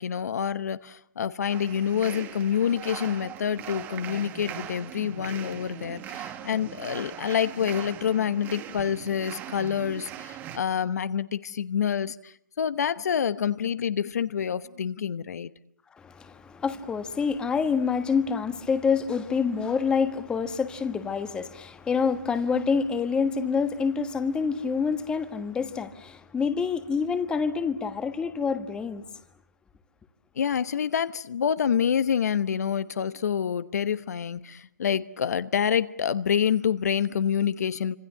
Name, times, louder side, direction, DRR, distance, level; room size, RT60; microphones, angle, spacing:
voice 1, 0.0-15.5 30.4-38.0, left 8 dB, 65° left, 1.1 m, -27 dB
sound 1, 1.5-10.6, right 10 dB, 20° right, 1.5 m, -40 dB
voice 2, 16.0-29.0, left 5 dB, 10° left, 1.4 m, -27 dB
27.5 x 26.0 x 7.7 m
hypercardioid pair, 150°, 10 cm